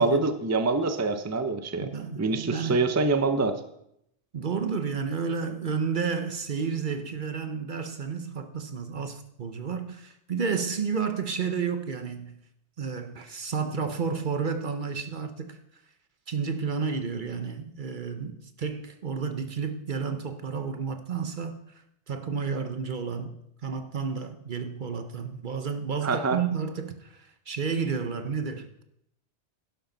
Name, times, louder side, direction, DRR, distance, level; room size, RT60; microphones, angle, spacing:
voice 1, 0.0-1.9 2.2-3.6 26.0-26.4, right 3 dB, 20° right, 0.6 m, -25 dB
voice 2, 1.8-2.8 4.3-12.4 12.8-15.6 16.3-21.6 22.1-28.8, right 6 dB, 50° right, 0.9 m, -31 dB
11.5 x 11.0 x 3.9 m
omnidirectional pair, 1.2 m